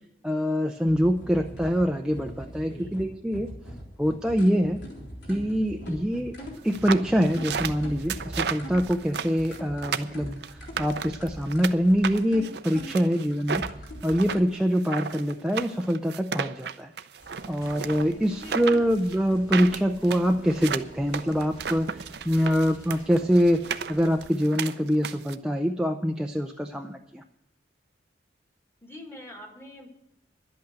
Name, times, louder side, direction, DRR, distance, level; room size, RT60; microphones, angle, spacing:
voice 1, 0.2-3.5 4.0-4.8 5.3-6.3 6.6-13.6 14.0-16.9 17.5-23.6 23.9-27.2, equal, 5° right, 3 dB, 0.5 m, -25 dB
sound 1, 0.8-14.4, equal, 70° left, 3.5 m, -41 dB
voice 2, 2.5-3.0 5.8-6.1 12.9-13.2 18.1-18.9 28.8-29.9, left 1 dB, 15° left, 3 dB, 1.7 m, -45 dB
sound 2, 6.7-11.7 12.0-25.4, right 6 dB, 65° right, 0.6 m, -33 dB
sound 3, 17.2-24.3, equal, 30° left, 3.8 m, -49 dB
11.5 x 8.6 x 7.9 m, 0.81 s
head